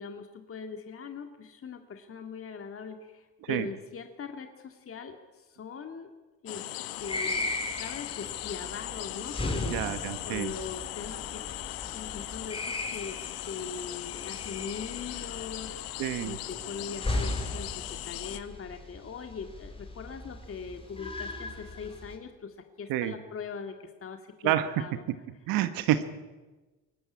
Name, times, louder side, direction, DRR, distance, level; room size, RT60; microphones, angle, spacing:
voice 1, 0.0-6.1 6.4-6.7 7.0-9.9 10.2-25.0, left 6 dB, 40° left, 6 dB, 2.1 m, -41 dB
sound 1, 6.5-18.4, left 16 dB, 85° left, 1.4 m, -39 dB
sound 2, 7.0-22.2, left 2 dB, 15° left, 4.4 m, -37 dB
voice 2, 9.7-10.5 16.0-16.4 22.9-23.1 24.4-24.7 25.5-26.0, right 13 dB, 80° right, 11 dB, 1.3 m, -28 dB
22.5 x 18.5 x 9.7 m, 1.2 s
supercardioid pair, 85°, 34 cm